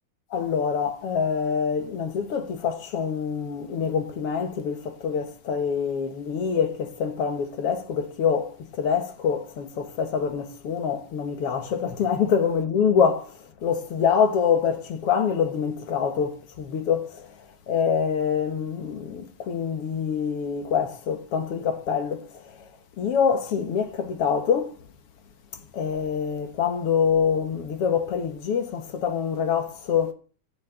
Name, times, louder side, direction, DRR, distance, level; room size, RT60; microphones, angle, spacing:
voice 1, 0.3-13.3 13.6-17.3 17.7-22.3 23.0-24.7 25.7-30.1, left 7 dB, 60° left, 1.9 m, -25 dB
10.5 x 6.4 x 8.9 m
omnidirectional pair, 3.5 m